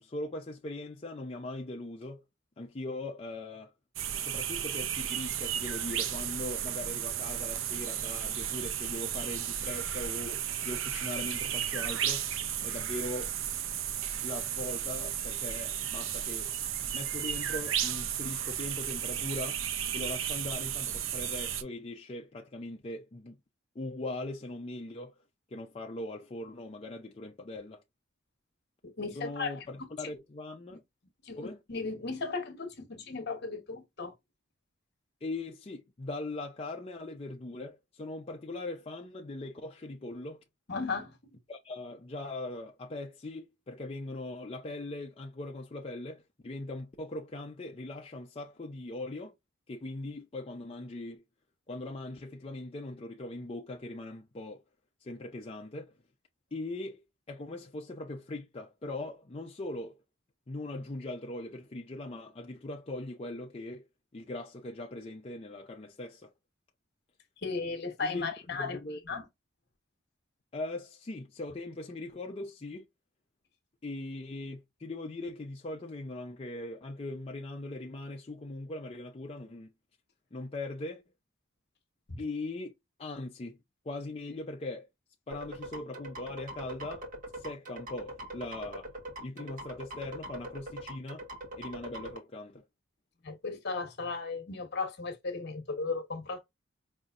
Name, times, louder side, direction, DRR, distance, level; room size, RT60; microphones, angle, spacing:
voice 1, 0.0-2.2 2.6-3.7 4.2-12.3 12.6-13.4 14.2-16.5 16.9-19.6 19.9-23.4 23.8-25.2 25.5-27.8 29.2-30.8 31.4-31.6 35.2-40.4 41.5-49.3 49.7-51.2 51.7-54.6 55.0-56.0 56.5-57.0 57.3-60.0 60.5-63.8 64.1-66.3 68.0-68.3 68.6-69.2 70.5-72.9 73.8-79.7 80.3-81.0 82.2-82.7 83.0-83.6 83.8-84.9 85.3-87.1 87.3-88.9 89.2-91.3 91.6-92.7, left 2 dB, 30° left, 0.5 m, -40 dB
sound 1, 4.0-21.6, right 10 dB, 70° right, 0.6 m, -34 dB
voice 2, 28.8-29.6 30.7-30.8 31.2-34.1 40.7-41.2 67.4-68.8 69.1-69.2 82.1-82.2 93.2-96.4, left 4 dB, 55° left, 1.1 m, -36 dB
sound 2, 85.3-92.2, right 1 dB, 40° right, 1.4 m, -42 dB
5.4 x 2.6 x 2.4 m
head